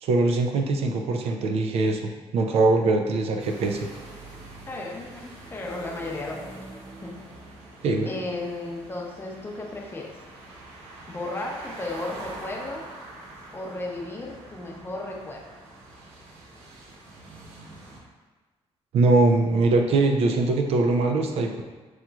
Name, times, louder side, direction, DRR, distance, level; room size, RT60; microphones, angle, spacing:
voice 1, 0.0-3.9 7.8-8.1 18.9-21.6, right 3 dB, 65° right, 3 dB, 0.4 m, -22 dB
sound 1, 3.4-18.0, right 2 dB, 85° right, 0.8 m, -44 dB
voice 2, 4.7-6.7 7.0-7.1 8.0-10.1 11.1-12.8 13.5-15.4, left 2 dB, 20° left, -1 dB, 0.6 m, -34 dB
6.1 x 2.9 x 2.3 m, 1.3 s
cardioid pair, 125°, 11 cm